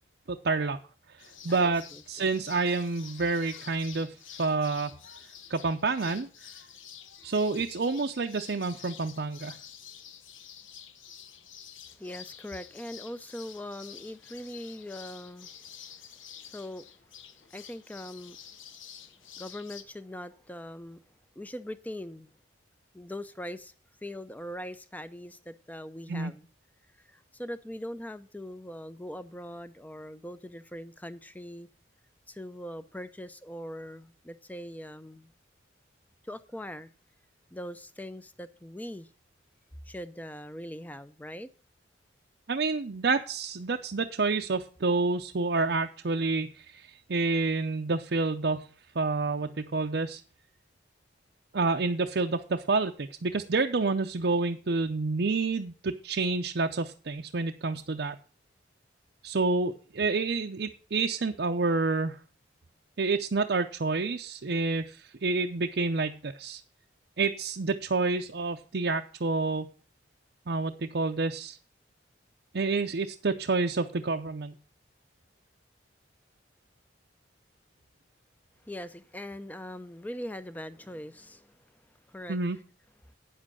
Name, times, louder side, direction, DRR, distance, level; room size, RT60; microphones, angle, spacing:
voice 1, 0.3-0.8 1.4-1.8 2.1-4.1 4.4-4.9 5.5-6.3 7.2-9.6 26.1-26.3 42.5-48.7 49.0-50.2 51.5-58.2 59.2-62.2 63.0-66.6 67.2-69.7 70.5-71.6 72.5-74.5 82.3-82.6, right 3 dB, 55° right, 0.6 m, -28 dB
sound 1, 1.2-19.8, left 8 dB, 85° left, 1.1 m, -49 dB
voice 2, 1.5-2.3 11.9-16.1 16.4-16.9 17.5-18.4 19.4-21.0 21.4-22.3 22.9-23.7 24.0-26.5 27.0-31.7 32.3-35.3 36.2-36.9 37.5-39.1 39.9-41.5 78.6-81.6 82.1-82.6, left 1 dB, 10° left, 0.5 m, -41 dB
9.3 x 7.5 x 6.2 m
head